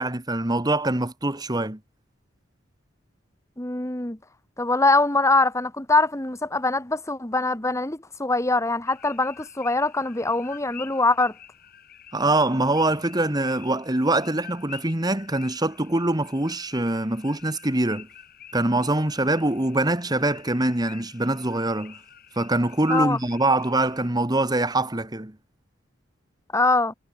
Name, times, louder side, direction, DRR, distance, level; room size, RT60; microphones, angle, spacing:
voice 1, 0.0-1.8 12.1-18.1 18.5-22.0 22.3-25.3, right 2 dB, 20° right, 1.6 m, -24 dB
voice 2, 3.6-4.2 4.6-11.3 22.9-23.2 26.5-26.9, left 2 dB, 15° left, 1.4 m, -23 dB
sound 1, 8.9-24.1, left 9 dB, 50° left, 7.2 m, -48 dB
head